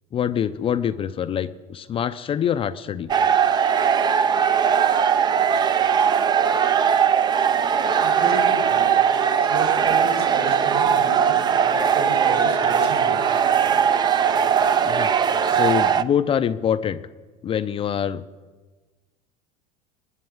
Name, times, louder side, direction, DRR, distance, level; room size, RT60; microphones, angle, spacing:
voice 1, 0.1-3.1 14.8-15.1 15.4-17.0 17.4-18.2, left 9 dB, 30° left, 11 dB, 0.5 m, -25 dB
sound 1, 3.1-16.0, right 7 dB, 20° right, 0.5 m, -19 dB
voice 2, 8.0-13.2, right 2 dB, 70° right, 0 dB, 5.9 m, -32 dB
19.5 x 9.9 x 7.2 m, 1.3 s
supercardioid pair, 125°, 20 cm